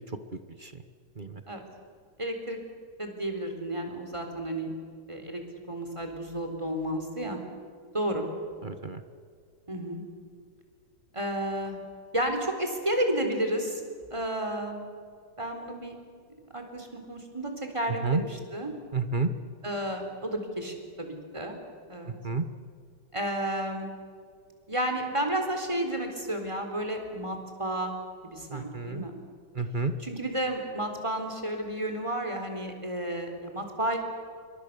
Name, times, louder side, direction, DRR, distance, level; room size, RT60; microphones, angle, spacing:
voice 1, 2.2-2.6 3.0-4.7 5.1-5.4 5.7-7.4 7.9-8.2 9.7-10.0 11.1-11.8 12.1-13.8 14.1-14.8 15.4-15.9 16.5-18.7 19.6-21.6 21.9-22.1 23.1-23.9 24.7-27.9 28.2-29.2 30.0-34.0, right 1 dB, 15° right, 4 dB, 3.8 m, -32 dB
voice 2, 8.6-9.0 18.0-18.2 18.9-19.3 22.1-22.4 28.5-29.1 29.5-29.9, right 4 dB, 35° right, 9 dB, 0.9 m, -30 dB
28.0 x 24.5 x 6.9 m, 2.1 s
omnidirectional pair, 2.4 m